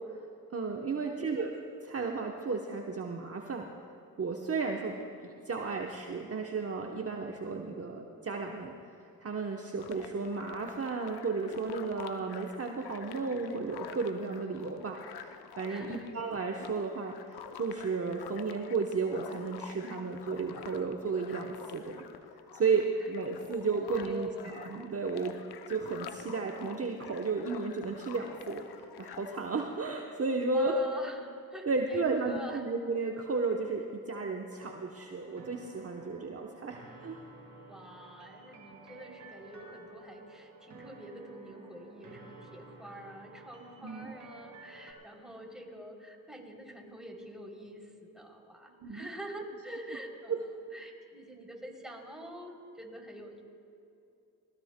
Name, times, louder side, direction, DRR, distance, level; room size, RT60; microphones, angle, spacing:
voice 1, 0.5-1.5 1.9-3.7 4.2-5.0 5.2-8.7 9.2-22.1 22.5-25.4 25.7-30.8 31.7-37.2 43.8-44.2 48.8-49.1 50.3-50.4, right 4 dB, 40° right, 2 dB, 0.9 m, -33 dB
voice 2, 1.0-1.5 15.7-16.1 23.7-24.5 30.5-32.6 37.6-53.4, right 1 dB, ahead, -1 dB, 3.1 m, -46 dB
sound 1, 9.8-29.4, left 8 dB, 80° left, 0.7 m, -48 dB
sound 2, 34.5-44.9, right 3 dB, 55° right, 2.5 m, -52 dB
20.5 x 17.0 x 2.2 m, 2.6 s
supercardioid pair, 45°, 38 cm